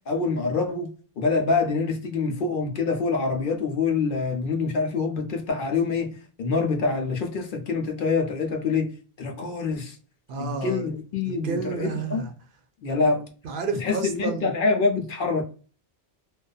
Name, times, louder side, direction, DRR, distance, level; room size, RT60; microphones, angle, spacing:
voice 1, 0.1-0.9 1.2-8.9 9.2-10.0 10.4-12.3 12.8-13.2 13.8-15.4, left 4 dB, 60° left, 0.7 m, -25 dB
voice 2, 10.3-10.9 11.3-12.3 13.4-14.5, right 4 dB, 65° right, 0.7 m, -30 dB
2.6 x 2.2 x 2.2 m
omnidirectional pair, 1.1 m